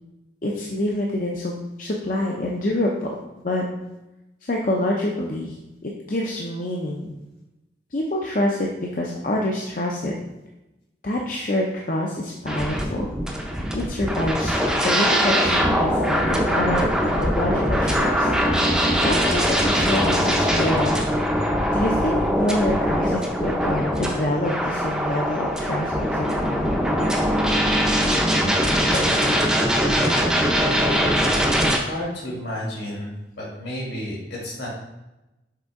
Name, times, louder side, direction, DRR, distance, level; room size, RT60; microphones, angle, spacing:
voice 1, 0.4-1.5 1.8-3.1 3.4-3.6 4.4-5.6 5.8-7.1 7.9-10.1 11.0-13.0 13.7-18.3 19.0-20.9 21.7-26.7 28.9-29.7, left 1 dB, 45° left, -2 dB, 0.6 m, -26 dB
sound 1, 12.5-31.8, equal, 5° right, 0.6 m, -22 dB
voice 2, 31.7-33.1 33.4-34.7, left 1 dB, 70° left, -4 dB, 2.3 m, -31 dB
6.6 x 4.4 x 3.6 m, 0.98 s
head